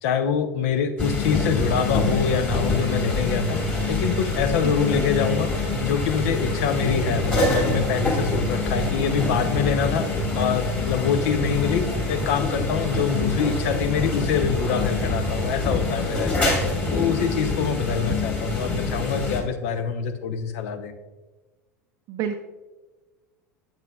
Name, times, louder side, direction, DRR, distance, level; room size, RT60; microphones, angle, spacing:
voice 1, 0.0-3.6 3.9-5.5 5.8-10.1 10.3-16.6 16.9-20.9, left 6 dB, 60° left, 8 dB, 0.7 m, -25 dB
sound 1, 1.0-19.4, left 2 dB, 20° left, 2.5 m, -25 dB
voice 2, 4.6-5.0 22.1-22.4, right 8 dB, 45° right, 5 dB, 0.5 m, -30 dB
8.8 x 7.5 x 2.4 m, 1.2 s
figure-of-eight pair, 80°, 9 cm